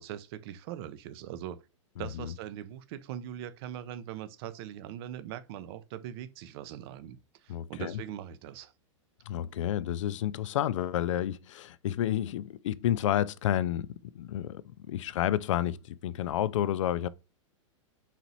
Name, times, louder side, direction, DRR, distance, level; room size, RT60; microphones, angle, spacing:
voice 1, 0.0-1.6 2.0-8.7, right 11 dB, 50° right, 0.6 m, -41 dB
voice 2, 7.5-8.0 9.3-14.6 14.9-17.1, left 11 dB, 70° left, 0.4 m, -30 dB
4.1 x 3.0 x 4.0 m
hypercardioid pair, 120°, 16 cm